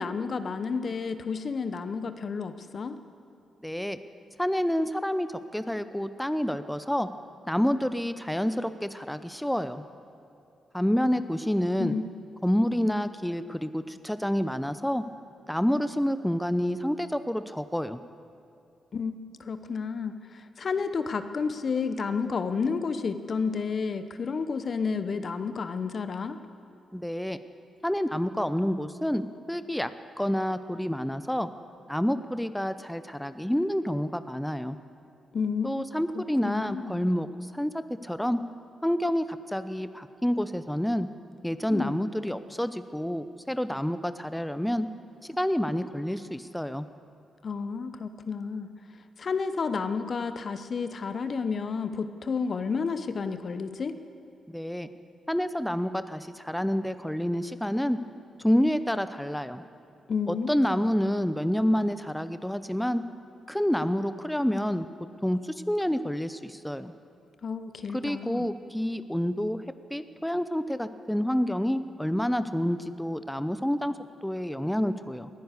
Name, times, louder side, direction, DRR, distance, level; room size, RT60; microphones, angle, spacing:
voice 1, 0.0-3.0 11.8-12.1 18.9-19.1 19.4-26.4 35.3-35.7 36.1-37.0 41.7-41.9 47.4-48.7 49.2-54.0 60.1-60.5 67.4-68.5, left 5 dB, 55° left, 10 dB, 0.9 m, -31 dB
voice 2, 3.6-4.0 4.4-7.1 7.5-9.8 10.7-11.9 12.4-15.0 15.5-18.0 26.9-27.4 27.8-29.2 29.5-29.9 30.2-31.5 31.9-34.8 35.6-38.4 38.8-41.1 41.4-44.9 45.2-46.9 54.5-54.9 55.3-58.0 58.4-59.6 60.3-63.0 63.5-64.9 65.2-66.9 67.9-69.6 69.9-74.0 74.2-75.3, equal, 5° left, 12 dB, 0.7 m, -28 dB
19.5 x 10.5 x 6.7 m, 2.7 s
hypercardioid pair, 45°, 0 cm